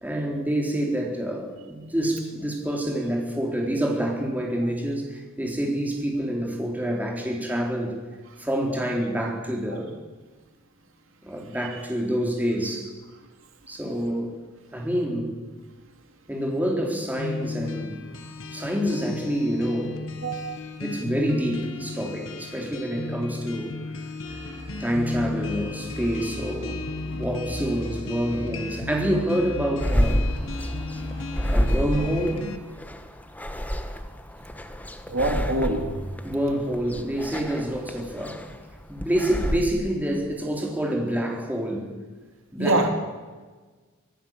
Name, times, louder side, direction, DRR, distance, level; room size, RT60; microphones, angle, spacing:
voice 1, 0.0-8.0 8.4-9.9 11.2-12.9 13.7-14.4 14.7-15.4 16.3-18.1 18.5-20.0 20.8-23.7 24.8-30.2 31.5-32.4 36.2-38.5 38.9-41.9 42.5-42.9, equal, 10° right, 4.0 m, -27 dB
sound 1, 17.2-32.6, left 3 dB, 75° left, 2.0 m, -35 dB
voice 2, 20.2-20.7 35.1-36.1 42.6-42.9, right 2 dB, 75° right, 2.8 m, -25 dB
sound 2, 24.2-32.3, equal, 30° right, 6.4 m, -37 dB
sound 3, 29.8-39.6, equal, 10° left, 1.4 m, -28 dB
25.0 x 15.0 x 7.5 m
head